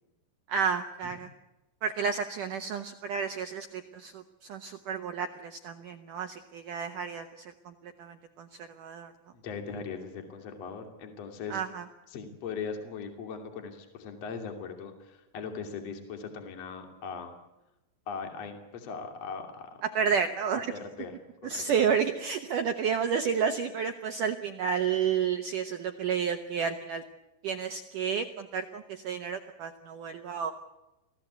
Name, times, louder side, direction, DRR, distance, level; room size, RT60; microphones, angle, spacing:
voice 1, 0.5-1.3 1.8-9.1 11.5-11.9 19.8-20.7 21.4-27.0 27.4-30.5, right 7 dB, 75° right, 7 dB, 1.9 m, -31 dB
voice 2, 9.3-11.6 12.1-17.3 18.1-19.7 20.7-21.1 21.5-21.9, left 5 dB, 40° left, 4 dB, 3.4 m, -39 dB
27.5 x 16.5 x 8.2 m, 0.97 s
omnidirectional pair, 5.2 m